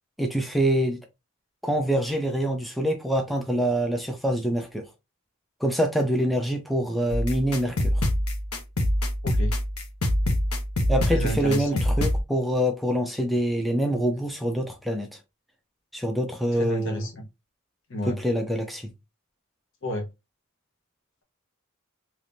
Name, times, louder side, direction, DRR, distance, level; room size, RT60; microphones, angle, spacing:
voice 1, 0.2-1.0 1.6-4.8 5.6-8.0 10.9-15.1 15.9-17.1 18.1-18.9, equal, ahead, 0.4 m, -25 dB
sound 1, 7.1-12.2, left 1 dB, 90° left, 0.9 m, -25 dB
voice 2, 9.2-9.5 11.1-11.8 16.5-17.3 17.9-18.2 19.8-20.1, equal, 60° left, 1.0 m, -30 dB
3.4 x 2.9 x 2.6 m
head